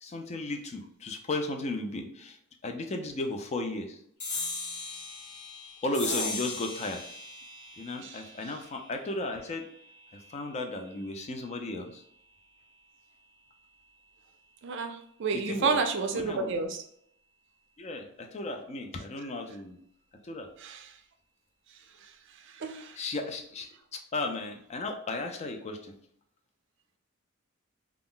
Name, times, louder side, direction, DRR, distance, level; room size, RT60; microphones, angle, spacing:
voice 1, 0.0-2.4 2.6-4.0 5.8-7.0 7.8-9.7 10.1-12.0 15.5-15.8 16.1-16.5 17.8-19.8 20.2-20.5 23.0-26.0, left 2 dB, 30° left, 4 dB, 0.4 m, -35 dB
sound 1, 4.2-11.0, left 3 dB, 85° left, 0.9 m, -39 dB
voice 2, 14.6-16.8 20.6-21.0 22.0-22.1 22.4-23.0, right 4 dB, 60° right, 6 dB, 0.4 m, -31 dB
2.3 x 2.0 x 3.7 m, 0.68 s
head